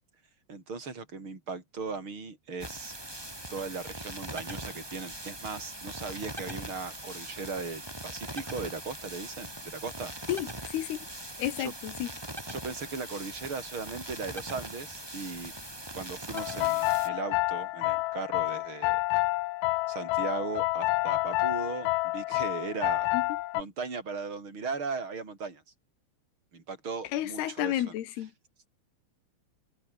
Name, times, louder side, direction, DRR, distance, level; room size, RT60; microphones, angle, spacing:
voice 1, 0.5-3.0 3.5-10.1 11.6-11.7 12.5-15.5 15.9-19.0 19.9-23.1 23.5-25.6 26.5-27.8, right 4 dB, 25° right, 6.4 m, -38 dB
sound 1, 2.6-17.1, right 1 dB, 5° right, 2.2 m, -41 dB
voice 2, 10.3-11.0 11.4-12.1 23.1-23.2 27.1-28.3, left 12 dB, 65° left, 3.4 m, -31 dB
sound 2, 16.3-23.6, left 20 dB, 85° left, 2.6 m, -29 dB
omnidirectional pair, 5.4 m